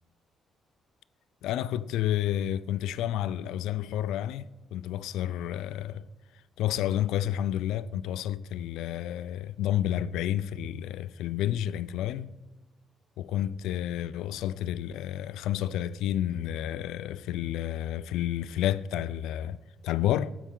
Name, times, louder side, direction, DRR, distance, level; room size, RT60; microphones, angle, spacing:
voice 1, 1.4-6.1 6.6-12.3 13.2-19.6 19.8-20.3, left 11 dB, 90° left, 0.3 m, -30 dB
13.0 x 8.2 x 3.7 m
cardioid pair, 90°, 0 cm